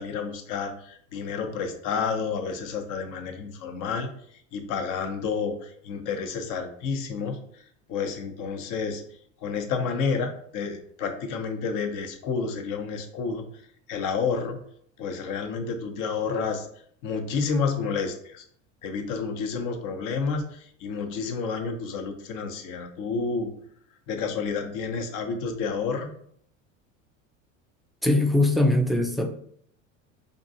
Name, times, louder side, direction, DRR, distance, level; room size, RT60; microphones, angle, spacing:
voice 1, 0.0-4.1 4.5-7.6 7.9-9.0 9.4-13.5 13.9-14.6 15.0-16.7 17.0-18.4 18.8-23.5 24.1-26.1, left 5 dB, 55° left, 6 dB, 0.9 m, -30 dB
voice 2, 28.0-29.3, left 2 dB, ahead, 3 dB, 0.4 m, -21 dB
4.5 x 2.6 x 2.7 m, 0.62 s
hypercardioid pair, 80°, 39 cm